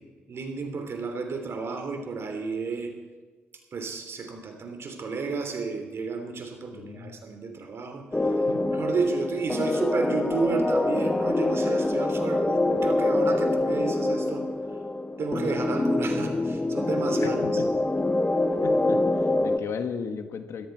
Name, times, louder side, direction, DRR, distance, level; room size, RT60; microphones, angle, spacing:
voice 1, 0.3-2.9 3.7-8.3 8.7-14.4 15.2-17.6, right 4 dB, 60° right, 5 dB, 3.2 m, -32 dB
voice 2, 6.7-7.2 8.5-8.8 17.2-17.7 18.6-20.7, left 6 dB, 65° left, 8 dB, 1.5 m, -36 dB
sound 1, 8.1-19.6, left 2 dB, 20° left, 1.2 m, -25 dB
17.0 x 13.5 x 4.6 m, 1.4 s
hypercardioid pair, 45°, 5 cm